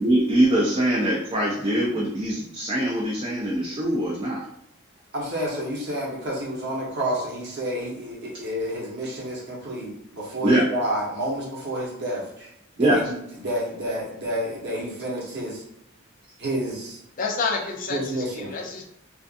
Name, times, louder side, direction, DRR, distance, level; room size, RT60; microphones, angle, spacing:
voice 1, 0.0-4.4 10.4-10.7 12.8-13.0, right 1 dB, 25° right, -4 dB, 0.4 m, -22 dB
voice 2, 5.1-12.5 12.7-15.6 16.4-17.0 17.9-18.5, equal, 55° right, -3 dB, 0.9 m, -29 dB
voice 3, 17.2-18.8, left 4 dB, 40° left, 0 dB, 0.4 m, -29 dB
2.5 x 2.4 x 2.4 m, 0.78 s
head